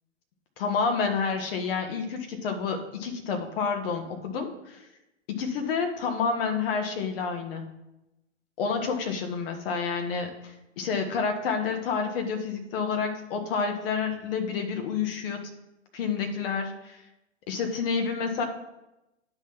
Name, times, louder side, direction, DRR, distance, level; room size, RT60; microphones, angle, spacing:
voice 1, 0.6-4.8 5.3-7.6 8.6-15.4 15.9-17.0 17.5-18.4, left 5 dB, 50° left, 4 dB, 1.5 m, -29 dB
9.6 x 4.0 x 6.1 m, 0.93 s
hypercardioid pair, 115°, 37 cm